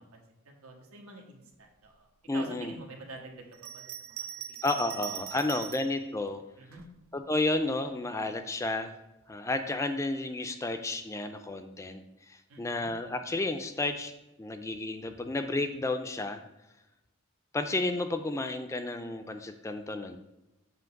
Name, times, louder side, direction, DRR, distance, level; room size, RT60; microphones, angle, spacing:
voice 1, 0.0-4.6 6.6-6.8 12.5-12.9, right 2 dB, 90° right, 2 dB, 1.2 m, -48 dB
voice 2, 2.3-2.8 4.6-6.4 7.1-8.9 9.3-14.1 14.4-16.4 17.5-20.2, left 2 dB, 15° left, 7 dB, 0.3 m, -32 dB
Bell, 3.5-6.0 6.7-7.6, right 10 dB, 65° right, 0.4 m, -41 dB
7.7 x 2.8 x 5.8 m, 0.98 s
head